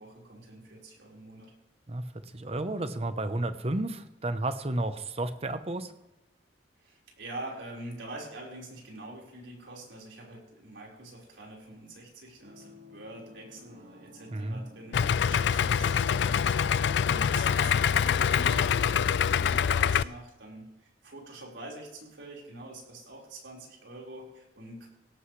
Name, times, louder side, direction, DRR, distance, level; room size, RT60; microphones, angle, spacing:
voice 1, 0.0-1.5 6.8-16.7 17.0-24.9, right 1 dB, 80° right, -3 dB, 4.7 m, -45 dB
voice 2, 2.3-5.9 14.3-14.6, right 2 dB, 35° right, 10 dB, 0.8 m, -32 dB
sound 1, 12.4-17.7, left 3 dB, 55° right, 5.1 m, -51 dB
Idling, 14.9-20.0, left 7 dB, 65° left, 0.3 m, -25 dB
17.5 x 14.0 x 3.3 m, 0.93 s
head